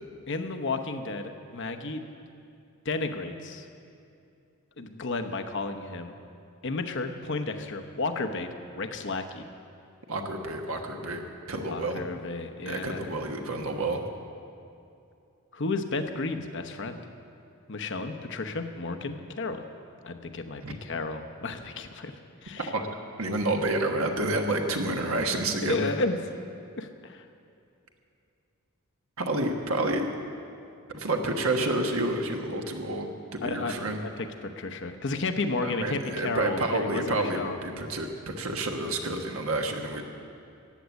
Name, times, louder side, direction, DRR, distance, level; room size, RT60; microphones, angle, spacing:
voice 1, 0.3-2.0 2.8-3.6 4.8-6.1 6.6-9.4 11.6-13.1 15.5-17.0 17.7-19.6 20.0-22.1 22.4-22.7 25.6-26.2 26.7-27.2 33.4-33.7 34.0-37.6, left 3 dB, 55° left, 7 dB, 0.9 m, -32 dB
voice 2, 10.1-11.2 11.5-12.0 12.6-14.0 20.6-20.7 22.6-22.9 23.2-26.0 29.2-30.0 30.9-34.0 35.6-40.0, right 2 dB, 70° right, 3 dB, 1.3 m, -29 dB
14.5 x 9.2 x 8.3 m, 2.6 s
head